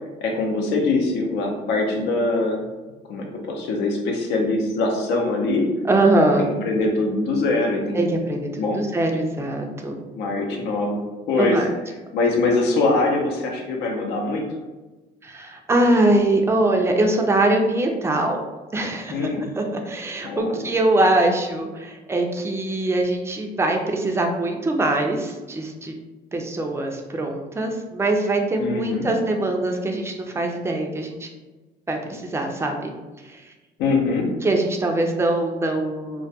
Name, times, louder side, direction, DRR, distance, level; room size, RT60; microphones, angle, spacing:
voice 1, 0.2-2.6 3.1-5.6 6.7-8.2 8.6-8.8 10.1-11.0 11.3-11.6 12.1-14.5 19.1-19.5 20.2-20.6 28.6-29.1 33.8-34.3, left 3 dB, 85° left, 1 dB, 0.6 m, -23 dB
voice 2, 5.8-6.5 7.9-10.0 11.4-11.7 15.2-18.4 18.7-19.3 19.6-25.9 26.3-31.3 31.9-32.9 33.2-33.5 34.4-36.3, right 2 dB, 15° right, 2 dB, 0.3 m, -22 dB
2.2 x 2.2 x 2.7 m, 1.2 s
cardioid pair, 110°, 17 cm